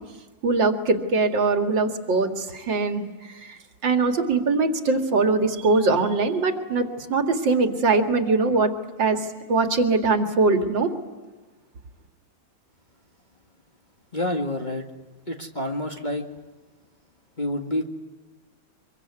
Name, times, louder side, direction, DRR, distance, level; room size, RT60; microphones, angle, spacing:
voice 1, 0.4-8.7 9.0-10.9, right 3 dB, 65° right, 6 dB, 2.7 m, -22 dB
voice 2, 14.1-14.9 15.3-16.3 17.4-17.8, left 1 dB, 25° left, 2 dB, 1.8 m, -28 dB
25.5 x 23.5 x 9.7 m, 1.3 s
omnidirectional pair, 2.2 m